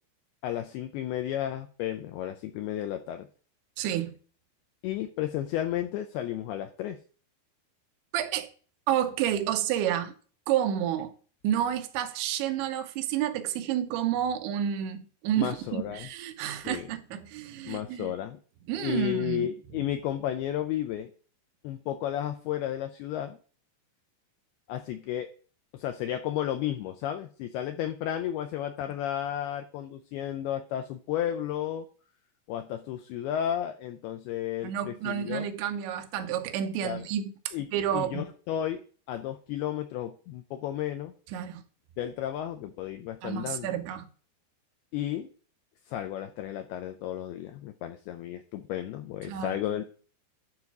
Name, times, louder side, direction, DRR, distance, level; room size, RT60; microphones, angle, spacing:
voice 1, 0.4-3.3 4.8-7.0 15.4-16.1 16.6-16.9 17.7-18.4 18.8-21.1 21.6-23.4 24.7-25.3 25.7-31.9 32.5-35.5 36.8-37.1 37.5-38.8 39.1-41.1 42.0-43.8 44.9-45.3 45.9-49.9, left 11 dB, 85° left, 2.3 m, -33 dB
voice 2, 3.8-4.1 8.1-8.5 8.9-10.1 10.5-11.1 11.4-18.1 18.7-19.5 34.6-38.3 41.3-41.6 43.2-44.1 49.3-49.6, right 10 dB, 90° right, 3.1 m, -30 dB
11.5 x 4.2 x 4.8 m
omnidirectional pair, 5.1 m